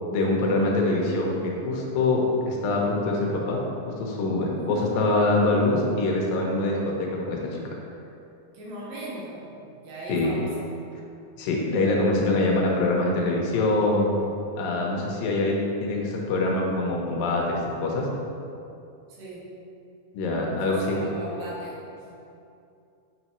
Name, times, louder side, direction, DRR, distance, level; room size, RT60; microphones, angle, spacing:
voice 1, 0.1-3.6 4.0-7.6 10.1-10.3 11.4-14.1 14.6-18.1 20.1-21.0, left 2 dB, 80° left, -2 dB, 2.5 m, -24 dB
voice 2, 4.5-5.3 8.5-10.7 19.1-19.5 20.7-22.2, right 1 dB, 85° right, -6 dB, 2.9 m, -38 dB
6.5 x 5.4 x 3.0 m, 2.7 s
omnidirectional pair, 4.1 m